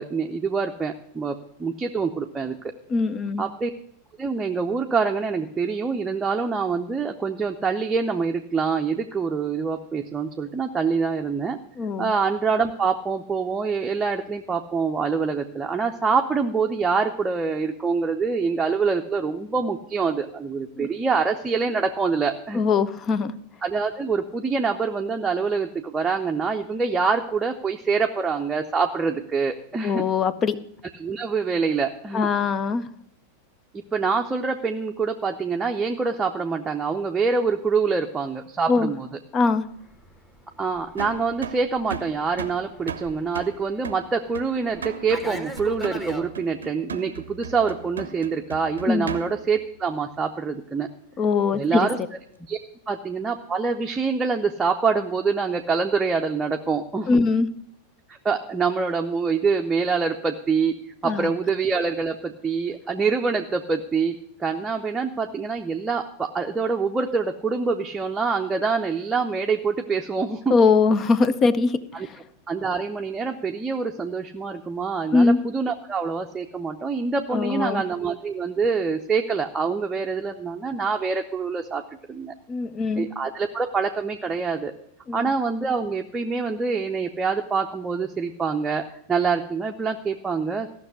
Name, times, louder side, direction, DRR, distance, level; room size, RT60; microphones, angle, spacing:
voice 1, 0.0-2.7 3.4-3.7 4.2-11.6 12.0-22.6 23.6-30.0 31.0-32.3 33.7-39.1 40.6-50.9 51.5-52.0 52.5-52.6 52.9-57.1 58.1-60.8 61.0-70.5 71.9-72.1 72.5-81.8 82.1-82.3 83.0-84.7 85.1-90.7, right 5 dB, 15° right, 2 dB, 0.7 m, -25 dB
voice 2, 2.9-3.4 11.8-12.1 20.8-20.9 22.5-23.3 29.8-30.6 32.1-32.8 38.7-38.9 39.3-39.6 48.9-49.1 51.2-51.9 57.1-57.5 61.0-61.3 70.5-72.2 75.1-75.4 77.3-77.8 82.5-83.1 85.1-85.2, left 4 dB, 25° left, 17 dB, 0.6 m, -21 dB
Fixed-wing aircraft airplane, 39.8-46.3, equal, 5° left, 1.3 m, -40 dB
sound 1, 41.0-49.6, right 6 dB, 70° right, 0.6 m, -37 dB
14.5 x 6.1 x 7.9 m, 0.69 s
figure-of-eight pair, 90°, 0 cm